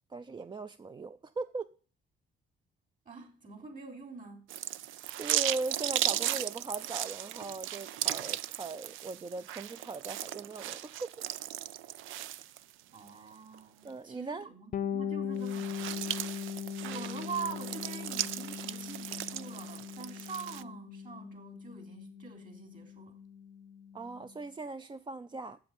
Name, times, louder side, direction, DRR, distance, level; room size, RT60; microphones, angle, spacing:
voice 1, 0.1-1.7 5.1-11.1 13.1-13.3 13.8-14.5 16.9-17.0 23.9-25.6, right 3 dB, 25° right, 0.4 m, -39 dB
voice 2, 3.1-4.5 12.9-16.3 16.8-23.3, right 5 dB, 45° right, 3.5 m, -44 dB
sound 1, 4.5-13.1 13.5-13.6 15.4-20.6, right 13 dB, 85° right, 0.5 m, -36 dB
Bass guitar, 14.7-24.3, left 8 dB, 45° left, 0.6 m, -40 dB
7.7 x 7.7 x 8.7 m
cardioid pair, 90°, 20 cm